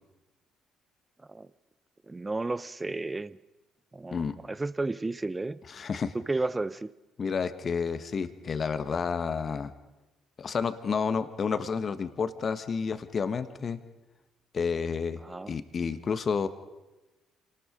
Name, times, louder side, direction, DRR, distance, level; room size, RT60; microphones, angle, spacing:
voice 1, 2.1-3.4 3.9-4.2 4.5-5.6 6.1-6.9 15.2-15.6, right 2 dB, 20° right, 17 dB, 0.8 m, -32 dB
voice 2, 5.7-6.1 7.2-9.7 10.4-13.8 14.5-15.2 15.5-16.5, left 5 dB, 45° left, 11 dB, 1.5 m, -30 dB
27.5 x 19.5 x 5.3 m, 1.1 s
hypercardioid pair, 50°, 0 cm